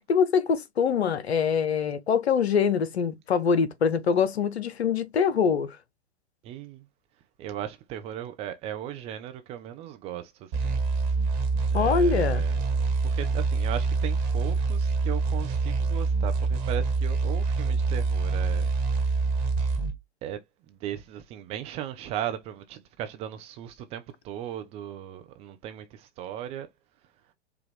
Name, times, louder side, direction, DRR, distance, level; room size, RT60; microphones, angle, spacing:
voice 1, 0.1-5.8 11.7-12.4, left 6 dB, 70° left, 0.7 m, -24 dB
voice 2, 6.4-6.8 7.4-10.8 11.7-12.6 13.0-18.7 20.2-20.4 20.7-26.7, right 11 dB, 20° right, 0.4 m, -37 dB
sound 1, 10.5-20.0, right 4 dB, 45° right, 1.3 m, -26 dB
5.0 x 2.3 x 3.1 m
figure-of-eight pair, 100°, 33 cm